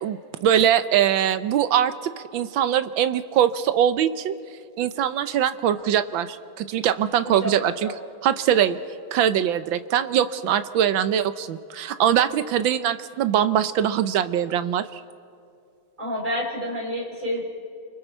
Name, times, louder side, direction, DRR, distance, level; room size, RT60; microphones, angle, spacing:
voice 1, 0.0-1.9 2.3-4.3 4.8-7.9 8.2-8.8 9.1-15.0, right 10 dB, 70° right, 12 dB, 1.4 m, -22 dB
voice 2, 7.4-7.9 16.0-17.4, equal, 20° right, -3 dB, 4.9 m, -29 dB
29.5 x 24.0 x 4.5 m, 2.4 s
omnidirectional pair, 2.3 m